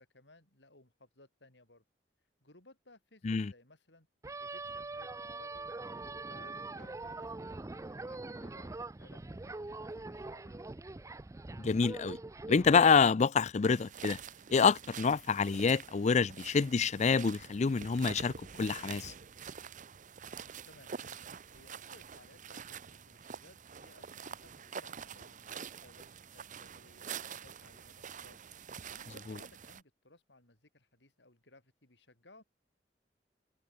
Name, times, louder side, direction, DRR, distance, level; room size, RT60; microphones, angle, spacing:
voice 1, 0.0-1.8 2.4-4.1 4.4-5.7 6.2-10.6 20.6-27.1 27.4-28.4 28.9-32.4, left 2 dB, 90° left, 6.7 m, -61 dB
sound 1, 4.2-13.0, right 2 dB, 20° right, 0.5 m, -43 dB
voice 2, 11.6-12.2 12.5-14.2 14.5-18.3 18.6-19.1, left 5 dB, 40° left, 0.4 m, -27 dB
sound 2, 13.7-29.8, right 7 dB, 45° right, 0.8 m, -47 dB
head